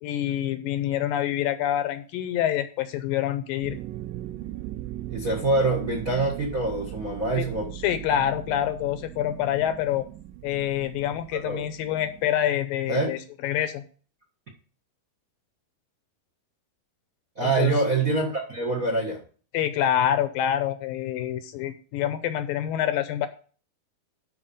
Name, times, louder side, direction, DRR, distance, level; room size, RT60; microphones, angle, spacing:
voice 1, 0.0-3.8 7.3-7.5 7.8-10.1 10.4-13.8 17.4-17.7 19.5-23.3, left 11 dB, 80° left, 11 dB, 2.2 m, -26 dB
sound 1, 3.6-12.3, right 14 dB, 85° right, 2.0 m, -39 dB
voice 2, 5.1-7.7 11.4-11.6 12.9-13.1 17.3-19.2, right 3 dB, 60° right, 1 dB, 0.8 m, -25 dB
12.0 x 4.9 x 5.4 m, 0.40 s
omnidirectional pair, 4.4 m